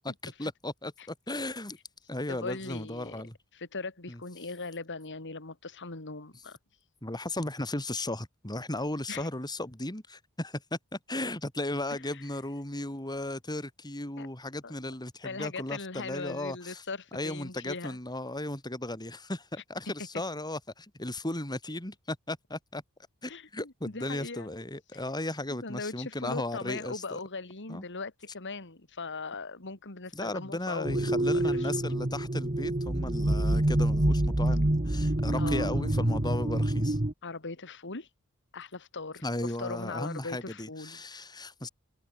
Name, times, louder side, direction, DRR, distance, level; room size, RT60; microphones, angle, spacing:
voice 1, 0.0-1.8 2.1-3.4 4.1-4.2 7.0-16.8 17.1-22.8 23.2-27.0 27.7-27.8 30.1-37.0 39.2-41.7, left 1 dB, 20° left, 3.9 m, -36 dB
voice 2, 2.3-3.2 3.5-6.6 9.1-9.3 11.9-12.2 14.2-14.3 14.6-14.7 15.2-18.0 23.3-24.5 24.9-25.0 25.5-31.7 35.4-35.9 37.2-38.1 38.5-41.1, left 3 dB, 55° left, 2.7 m, -40 dB
sound 1, 30.8-37.1, right 1 dB, 30° right, 1.4 m, -27 dB
head